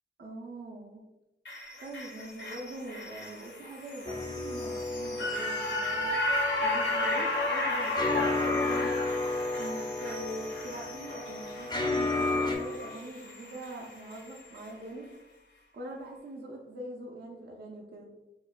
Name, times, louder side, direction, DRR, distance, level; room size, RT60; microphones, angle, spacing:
voice 1, 0.2-1.0 1.8-6.2 6.6-8.9 9.6-15.1 15.7-18.1, right 1 dB, 60° right, -1 dB, 0.4 m, -42 dB
sound 1, 1.4-13.8 14.1-14.2, left 2 dB, 70° left, 0.6 m, -33 dB
sound 2, 4.0-12.6, left 2 dB, 20° left, 0.4 m, -33 dB
3.0 x 2.1 x 2.3 m, 0.95 s
wide cardioid pair, 65°, 19 cm